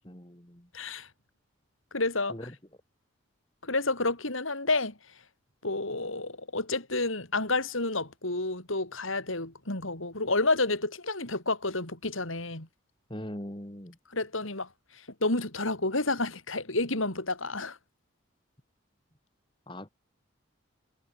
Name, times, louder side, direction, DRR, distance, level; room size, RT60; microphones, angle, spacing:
voice 1, 0.0-0.7 2.3-2.5 13.1-14.0 19.7-19.9, equal, 25° left, 3.3 m, -41 dB
voice 2, 0.7-1.1 1.9-2.4 3.6-4.9 5.6-12.7 14.1-14.7 15.2-17.8, left 2 dB, 80° left, 5.4 m, -30 dB
head